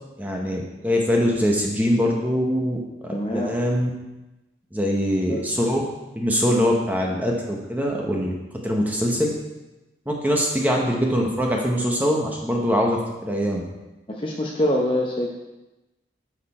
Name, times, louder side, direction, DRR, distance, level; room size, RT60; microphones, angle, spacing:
voice 1, 0.2-3.9 4.7-5.8 6.2-8.3 8.6-9.3 10.1-13.6, equal, 10° right, -1 dB, 1.0 m, -23 dB
voice 2, 3.1-3.5 5.3-5.5 14.1-15.3, left 1 dB, 30° left, -1 dB, 0.8 m, -24 dB
9.9 x 6.7 x 4.3 m, 1.0 s
head